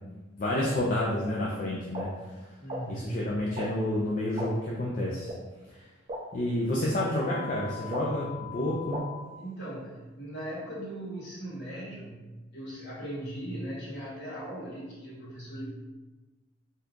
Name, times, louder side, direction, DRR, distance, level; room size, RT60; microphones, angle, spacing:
voice 1, 0.4-2.5 2.9-5.3 5.7-5.9 6.3-9.0, left 1 dB, 40° left, -4 dB, 0.4 m, -30 dB
sound 1, 1.9-2.0 2.7-2.8 3.6-3.7 4.4-4.5 5.3-5.4 6.1-6.2 7.0-7.1 7.9-8.0 8.9-9.0, right 1 dB, 30° right, 0.4 m, -34 dB
voice 2, 2.6-3.2 9.4-15.7, right 1 dB, 60° left, -7 dB, 1.1 m, -39 dB
sound 2, 7.2-9.2, left 10 dB, 45° right, 1.0 m, -42 dB
2.8 x 2.4 x 3.5 m, 1.2 s
head